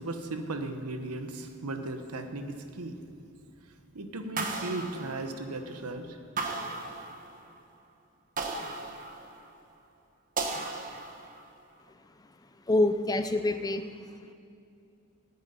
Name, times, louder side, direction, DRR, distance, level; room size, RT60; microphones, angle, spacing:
voice 1, 0.0-3.0 3.9-6.2, right 2 dB, 80° right, 7 dB, 1.1 m, -36 dB
sound 1, 4.4-5.7 6.4-7.5 8.4-9.6 10.4-11.5, right 3 dB, 35° right, 1.1 m, -36 dB
voice 2, 12.7-13.8, left 2 dB, 15° left, 9 dB, 0.5 m, -25 dB
9.5 x 9.2 x 8.3 m, 2.5 s
head